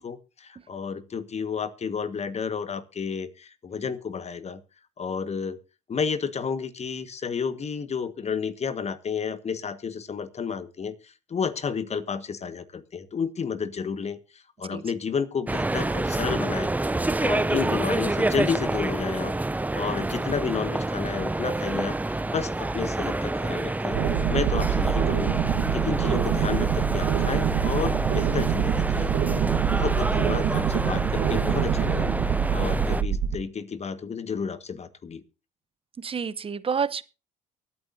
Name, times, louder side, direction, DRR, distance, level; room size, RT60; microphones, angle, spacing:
voice 1, 0.0-4.6 5.0-5.6 5.9-16.7 17.2-19.3 19.7-24.0 24.3-25.4 25.7-29.1 29.6-32.1 32.5-35.2, left 6 dB, 40° left, 1.6 m, -31 dB
sound 1, 15.5-33.0, right 2 dB, 10° right, 0.6 m, -28 dB
sound 2, 23.9-33.3, right 9 dB, 70° right, 1.3 m, -25 dB
voice 2, 36.0-37.0, right 6 dB, 30° right, 0.8 m, -28 dB
24.0 x 9.3 x 2.7 m
supercardioid pair, 70°, 18 cm